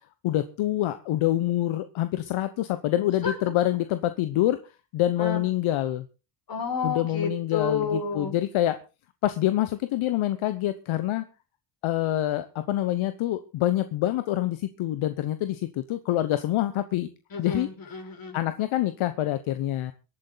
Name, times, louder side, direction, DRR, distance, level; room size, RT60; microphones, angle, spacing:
voice 1, 0.2-4.6 4.9-6.0 6.8-8.8 9.2-11.2 11.8-17.1 17.4-17.7 18.3-19.9, left 14 dB, 70° left, 11 dB, 1.1 m, -26 dB
voice 2, 6.5-8.3 17.3-18.4, left 5 dB, 45° left, 2 dB, 5.5 m, -30 dB
23.0 x 8.7 x 4.0 m, 0.32 s
cardioid pair, 85°, 50 cm